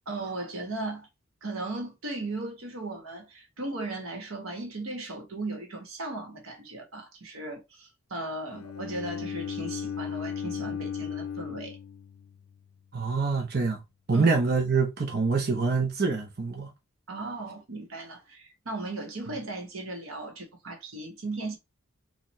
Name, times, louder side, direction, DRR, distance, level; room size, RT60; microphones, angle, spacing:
voice 1, 0.1-1.1 1.4-11.8 14.1-14.3 17.1-21.6, right 2 dB, 85° right, 1.2 m, -37 dB
Bowed string instrument, 8.5-12.6, left 7 dB, 90° left, 0.4 m, -36 dB
voice 2, 12.9-13.8 14.1-16.7, right 4 dB, 50° right, 0.7 m, -25 dB
4.4 x 2.3 x 3.1 m
head